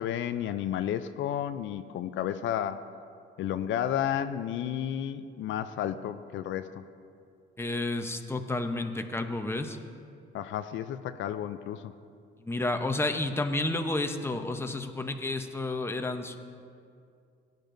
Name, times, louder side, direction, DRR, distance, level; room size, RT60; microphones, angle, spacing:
voice 1, 0.0-2.8 3.4-6.8 10.3-11.9, left 10 dB, 75° left, 11 dB, 0.4 m, -32 dB
voice 2, 7.6-9.8 12.4-16.4, left 2 dB, 10° left, 6 dB, 0.8 m, -31 dB
18.0 x 10.5 x 2.6 m, 2.4 s
cardioid pair, 90°, 20 cm